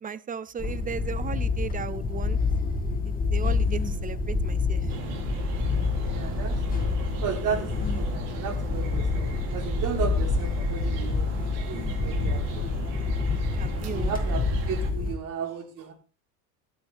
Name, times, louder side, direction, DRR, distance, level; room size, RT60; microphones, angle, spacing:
voice 1, 0.0-2.4 3.1-4.9 12.3-12.4 13.6-14.2, right 7 dB, 20° right, 18 dB, 0.5 m, -36 dB
sound 1, 0.6-15.1, left 4 dB, 20° left, 2.1 m, -27 dB
sound 2, 4.9-14.9, right 6 dB, 65° right, 3.1 m, -38 dB
voice 2, 5.6-12.6 13.9-15.9, right 7 dB, 45° right, 4 dB, 3.3 m, -35 dB
12.5 x 9.9 x 3.4 m, 0.36 s
supercardioid pair, 105°, 45 cm